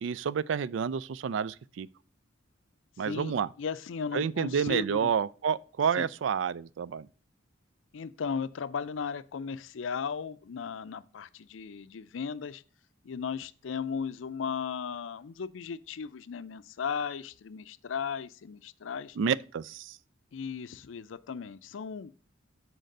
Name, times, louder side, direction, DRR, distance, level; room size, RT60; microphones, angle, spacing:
voice 1, 0.0-1.9 3.0-3.5 4.1-7.1 19.2-20.0, right 7 dB, 70° right, 0.3 m, -29 dB
voice 2, 3.0-5.1 6.0-6.1 7.9-12.6 13.0-19.2 20.3-22.1, left 6 dB, 80° left, 0.4 m, -36 dB
6.5 x 4.5 x 6.5 m
head